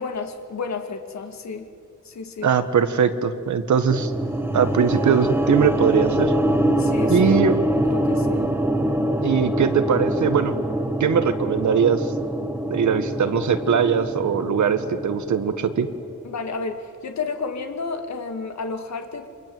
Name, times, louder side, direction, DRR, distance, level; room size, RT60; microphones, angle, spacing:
voice 1, 0.0-1.7 2.1-2.5 6.8-8.5 16.2-19.3, left 4 dB, 65° left, 6 dB, 2.2 m, -31 dB
voice 2, 2.4-4.1 4.5-6.3 7.1-7.5 9.2-10.5 11.0-12.1 12.7-15.9, right 6 dB, 70° right, 10 dB, 1.7 m, -21 dB
sound 1, 3.9-16.1, right 1 dB, 5° right, 1.6 m, -24 dB
29.0 x 25.0 x 8.0 m, 2.2 s
wide cardioid pair, 140°, 30 cm